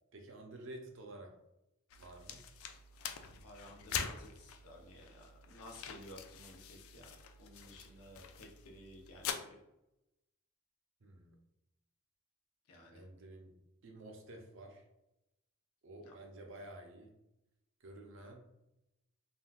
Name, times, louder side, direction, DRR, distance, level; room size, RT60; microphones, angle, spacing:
voice 1, 0.1-1.4 2.0-2.4 11.0-11.4 12.9-13.5 13.8-14.8 15.8-17.1 17.8-18.4, right 1 dB, 55° right, 3 dB, 0.5 m, -51 dB
sound 1, 1.9-9.3, left 8 dB, 70° left, 0.3 m, -45 dB
voice 2, 3.4-9.6 12.7-13.0 16.0-16.1, left 1 dB, 90° left, 0 dB, 0.7 m, -55 dB
3.5 x 2.3 x 2.3 m, 0.88 s
head